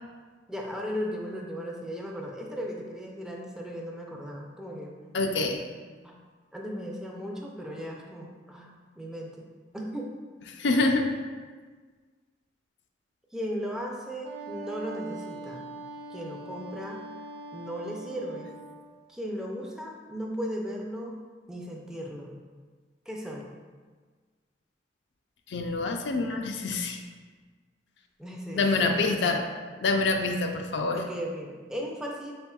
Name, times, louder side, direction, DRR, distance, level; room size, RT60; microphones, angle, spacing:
voice 1, 0.5-5.1 6.0-6.2 6.5-9.4 9.7-10.1 13.3-15.6 16.1-17.0 17.5-18.5 19.1-21.1 21.5-22.3 23.1-23.5 28.2-29.4 30.9-32.3, equal, 5° right, -1 dB, 0.4 m, -36 dB
voice 2, 5.1-5.6 10.6-11.1 25.5-27.0 28.6-29.4 29.8-31.0, left 3 dB, 70° left, 4 dB, 0.4 m, -26 dB
Wind instrument woodwind instrument, 14.2-18.9, right 2 dB, 65° right, 0.5 m, -42 dB
4.3 x 4.3 x 2.3 m, 1.5 s
head